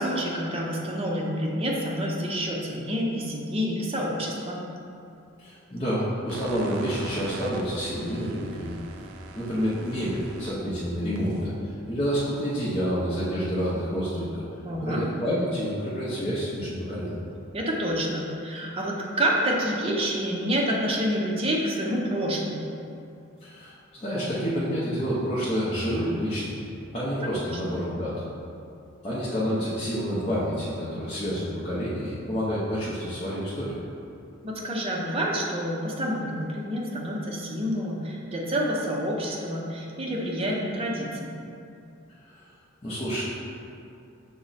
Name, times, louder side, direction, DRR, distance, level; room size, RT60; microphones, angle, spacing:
voice 1, 0.0-4.6 14.6-15.0 17.5-22.7 27.4-27.5 34.4-41.3, equal, 25° right, -2 dB, 0.5 m, -28 dB
voice 2, 5.4-8.8 9.3-14.4 14.8-17.2 23.4-26.6 26.9-28.2 29.0-33.8 42.8-43.2, equal, 30° left, -10 dB, 0.6 m, -28 dB
sound 1, 6.3-12.3, right 4 dB, 85° right, 0.3 m, -43 dB
5.9 x 2.1 x 4.0 m, 2.6 s
head